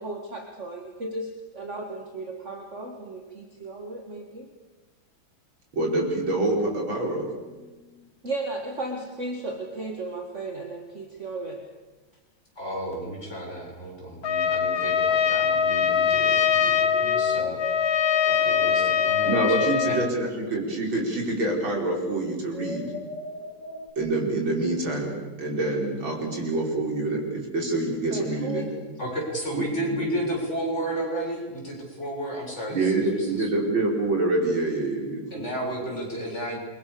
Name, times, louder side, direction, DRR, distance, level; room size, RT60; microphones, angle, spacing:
voice 1, 0.0-4.5 8.2-11.7 28.1-28.7, right 2 dB, 35° right, 3 dB, 2.4 m, -35 dB
voice 2, 5.7-7.3 19.2-22.9 24.0-28.7 29.5-29.6 30.0-30.1 32.7-35.5, right 2 dB, 80° right, 0 dB, 6.0 m, -26 dB
sound 1, 7.3-8.1 15.0-23.9, left 5 dB, 60° left, 3.3 m, -39 dB
voice 3, 12.6-17.6 18.3-19.6 19.9-20.0 29.0-33.5 35.3-36.6, right 1 dB, 35° left, -2 dB, 8.0 m, -33 dB
Trumpet, 14.2-20.1, left 7 dB, 75° left, 2.1 m, -23 dB
29.0 x 24.0 x 7.1 m, 1.2 s
omnidirectional pair, 2.2 m